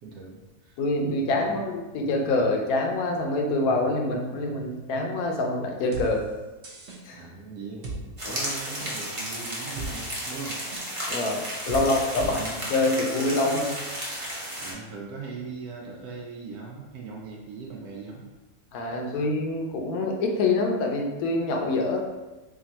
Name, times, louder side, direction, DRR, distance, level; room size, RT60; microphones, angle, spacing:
voice 1, 0.0-0.8 1.3-1.6 7.1-10.6 11.7-12.7 14.6-18.3 18.9-19.3, right 4 dB, 80° right, -2 dB, 1.1 m, -40 dB
voice 2, 0.8-6.3 7.0-7.2 8.2-8.4 11.1-12.4 12.7-13.8 18.7-22.0, left 2 dB, 75° left, 1 dB, 1.1 m, -26 dB
sound 1, 5.9-6.1 6.6-7.0 7.8-8.0 8.8-8.9 9.5-9.9 10.7-10.8 11.7-11.8 12.2-12.3 12.6-12.8 13.4-13.5, right 3 dB, 55° right, 0.9 m, -35 dB
sound 2, 8.2-14.7, equal, 30° right, 0.6 m, -33 dB
3.4 x 2.4 x 4.0 m, 1.1 s
omnidirectional pair, 1.6 m